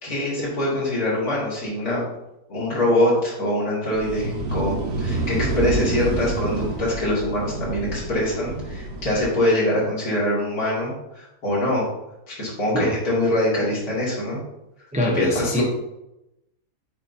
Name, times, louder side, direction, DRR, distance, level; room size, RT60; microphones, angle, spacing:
voice 1, 0.0-2.0 2.5-11.8 12.3-14.4 15.1-15.6, left 1 dB, 80° left, -7 dB, 3.0 m, -24 dB
sound 1, 3.9-9.2, right 2 dB, 75° right, 1.2 m, -28 dB
voice 2, 14.9-15.6, left 1 dB, 5° right, -1 dB, 0.7 m, -23 dB
7.2 x 5.2 x 2.8 m, 0.90 s
omnidirectional pair, 1.6 m